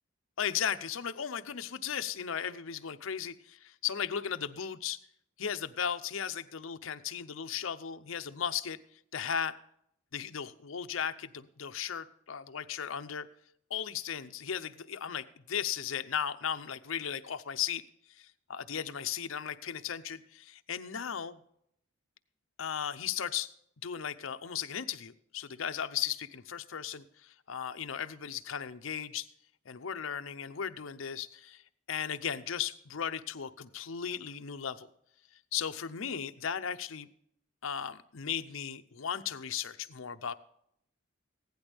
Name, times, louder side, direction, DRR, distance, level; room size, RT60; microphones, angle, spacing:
voice 1, 0.4-5.0 5.4-8.8 9.1-9.6 10.1-13.3 13.7-17.8 18.2-21.4 22.6-23.5 23.8-29.3 29.7-31.6 31.9-34.9 35.5-37.1 37.6-40.3, left 8 dB, 80° left, 9 dB, 0.7 m, -36 dB
16.0 x 10.5 x 3.5 m, 0.71 s
head